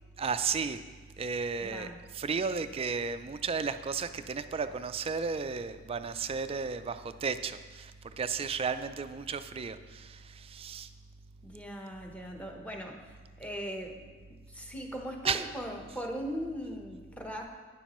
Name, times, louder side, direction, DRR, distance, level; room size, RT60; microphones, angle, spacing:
voice 1, 0.2-0.8 1.2-10.9 15.2-15.4, right 5 dB, 30° right, 11 dB, 0.3 m, -34 dB
voice 2, 1.6-2.0 11.4-14.1 14.5-17.5, equal, 5° left, 1 dB, 0.9 m, -39 dB
11.5 x 10.0 x 3.0 m, 1.4 s
head